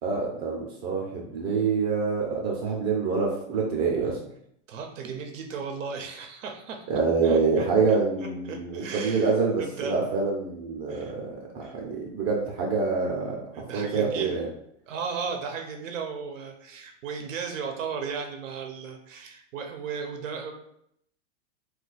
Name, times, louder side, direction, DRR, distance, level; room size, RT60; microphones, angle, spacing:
voice 1, 0.0-4.2 6.9-14.5, right 4 dB, 35° right, -1 dB, 0.5 m, -26 dB
voice 2, 4.7-6.9 7.2-7.7 8.2-10.1 10.9-11.1 11.6-11.7 13.5-14.4 14.9-20.5, right 5 dB, 90° right, 3 dB, 0.7 m, -35 dB
2.3 x 2.3 x 3.9 m, 0.72 s
supercardioid pair, 135°, 37 cm